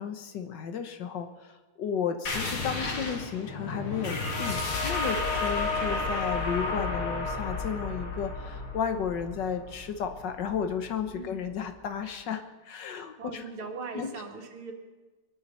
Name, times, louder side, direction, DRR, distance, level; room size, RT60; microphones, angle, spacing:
voice 1, 0.0-13.4 13.9-14.1, left 7 dB, 65° left, 7 dB, 1.6 m, -33 dB
sound 1, 2.3-11.5, left 3 dB, 85° left, 3.0 m, -32 dB
voice 2, 12.9-14.7, right 4 dB, 85° right, 3 dB, 2.7 m, -40 dB
21.5 x 11.0 x 5.5 m, 1.3 s
omnidirectional pair, 2.3 m